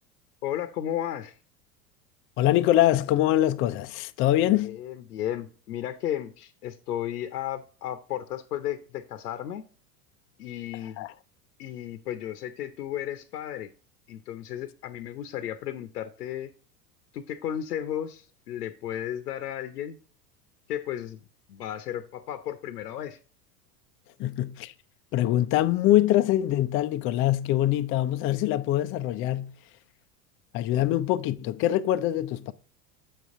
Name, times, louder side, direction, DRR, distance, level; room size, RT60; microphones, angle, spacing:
voice 1, 0.4-1.4 4.4-9.6 10.4-11.1 11.6-13.7 14.1-16.5 17.1-20.0 20.7-21.2 21.5-23.2, left 11 dB, 85° left, 0.8 m, -34 dB
voice 2, 2.4-4.8 11.0-11.1 24.2-24.7 25.1-29.5 30.5-32.5, left 13 dB, 30° left, 0.4 m, -24 dB
7.4 x 5.5 x 3.6 m
hypercardioid pair, 95°, 47 cm